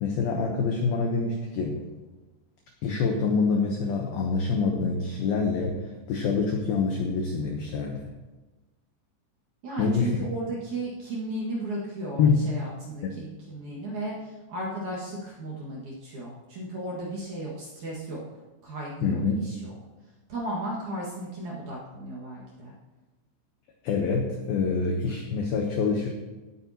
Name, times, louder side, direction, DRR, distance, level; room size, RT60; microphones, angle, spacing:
voice 1, 0.0-1.8 2.8-8.0 9.8-10.2 12.2-12.5 19.0-19.4 23.8-26.1, left 4 dB, 85° left, 2 dB, 2.1 m, -26 dB
voice 2, 9.6-19.7 20.3-22.7, right 1 dB, 55° right, -5 dB, 2.4 m, -35 dB
17.5 x 9.0 x 2.9 m, 1.2 s
omnidirectional pair, 5.7 m